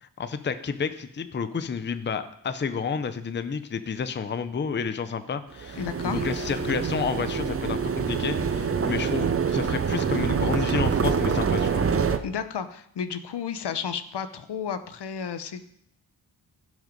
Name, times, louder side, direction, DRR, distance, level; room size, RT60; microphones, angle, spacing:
voice 1, 0.0-11.8, left 6 dB, 25° left, 11 dB, 0.6 m, -30 dB
sound 1, 5.6-12.2, right 6 dB, 35° right, 0.6 m, -26 dB
voice 2, 5.8-6.3 12.2-15.8, left 7 dB, 75° left, 11 dB, 0.9 m, -32 dB
16.5 x 6.4 x 5.3 m, 0.71 s
wide cardioid pair, 175°, 41 cm